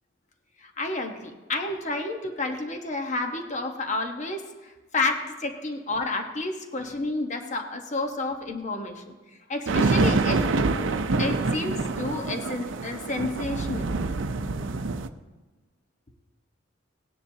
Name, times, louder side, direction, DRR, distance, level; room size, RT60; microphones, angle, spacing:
voice 1, 0.6-9.1 9.5-10.5 11.2-13.9, left 2 dB, 35° left, 4 dB, 1.1 m, -30 dB
sound 1, 9.7-15.1, right 3 dB, 70° right, 0.6 m, -26 dB
18.0 x 9.9 x 2.8 m, 1.3 s
head